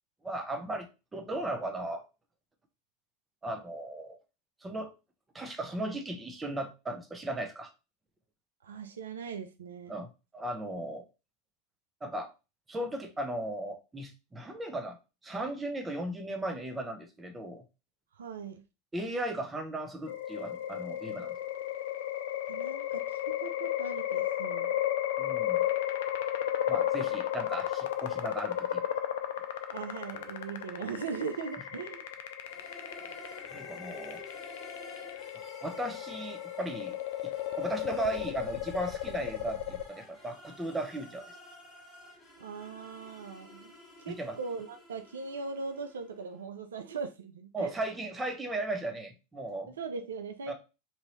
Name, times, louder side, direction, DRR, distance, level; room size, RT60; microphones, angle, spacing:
voice 1, 0.2-0.9 1.1-2.0 3.4-4.2 4.6-4.9 5.3-7.7 9.9-11.0 12.0-12.3 12.7-15.0 15.2-17.6 18.9-21.3 25.2-25.6 26.7-28.8 33.5-34.2 35.6-37.0 37.2-41.3 44.1-44.4 47.5-49.7 50.5-50.6, right 1 dB, 15° right, 0.8 m, -36 dB
voice 2, 8.6-9.9 18.1-18.6 22.5-24.8 29.7-32.0 42.4-43.7 44.0-47.7 49.8-50.5, right 5 dB, 80° right, 0.4 m, -40 dB
sound 1, 20.1-39.9, left 12 dB, 70° left, 0.4 m, -34 dB
sound 2, 32.4-46.3, left 1 dB, 10° left, 1.4 m, -51 dB
2.9 x 2.7 x 3.0 m
hypercardioid pair, 90°, 0 cm